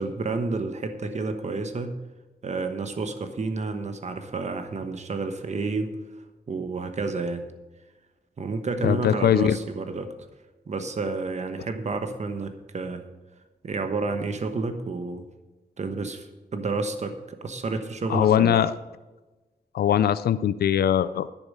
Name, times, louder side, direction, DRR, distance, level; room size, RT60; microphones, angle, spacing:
voice 1, 0.0-1.9 2.4-5.9 6.5-7.5 8.4-10.1 10.7-13.1 13.6-15.2 15.8-18.6, right 3 dB, 45° right, 7 dB, 1.1 m, -30 dB
voice 2, 8.8-9.6 18.1-18.7 19.7-21.3, left 10 dB, 75° left, 15 dB, 0.4 m, -21 dB
10.5 x 10.0 x 5.4 m, 1.2 s
wide cardioid pair, 150°, 16 cm